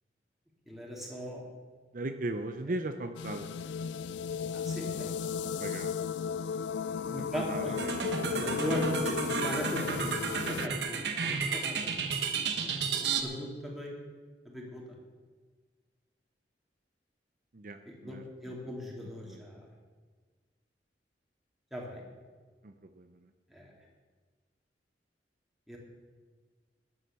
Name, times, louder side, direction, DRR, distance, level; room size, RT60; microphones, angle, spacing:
voice 1, 0.7-1.4 4.5-5.1 7.0-7.8 8.3-12.2 12.5-13.9 14.4-14.8 17.9-18.2 18.4-19.7 21.7-22.0 23.5-23.7 25.7-25.8, equal, ahead, -3 dB, 3.0 m, -38 dB
voice 2, 1.9-3.5 5.6-6.0 7.1-8.2 17.5-18.5 19.2-19.4 22.6-23.3, right 2 dB, 50° right, 7 dB, 0.6 m, -38 dB
sound 1, 3.2-10.7, left 6 dB, 80° left, 0.3 m, -35 dB
sound 2, 7.8-13.2, right 5 dB, 75° right, 1.3 m, -32 dB
12.5 x 9.8 x 7.0 m, 1.5 s
head